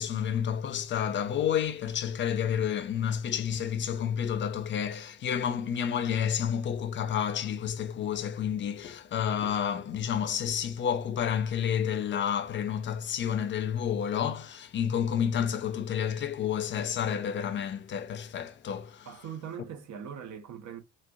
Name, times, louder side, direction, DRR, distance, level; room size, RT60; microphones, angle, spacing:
voice 1, 0.0-19.1, left 8 dB, 25° left, 0.4 m, -30 dB
voice 2, 19.1-20.8, right 8 dB, 35° right, 0.8 m, -41 dB
3.9 x 2.5 x 2.3 m
figure-of-eight pair, 50°, 49 cm